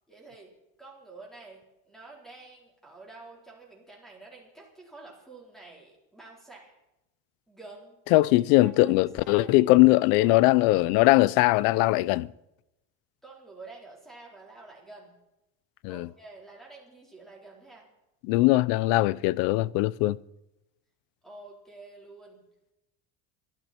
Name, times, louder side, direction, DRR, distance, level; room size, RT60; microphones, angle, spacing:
voice 1, 0.1-0.5 0.8-1.6 1.8-6.7 7.5-7.9 8.6-9.7 10.2-10.3 13.2-15.1 15.9-17.9 21.2-22.4, right 3 dB, ahead, 4.2 m, -49 dB
voice 2, 8.1-12.3 15.8-16.1 18.2-20.2, left 19 dB, 60° left, 0.6 m, -21 dB
22.0 x 13.5 x 4.5 m
cardioid pair, 175°, 40 cm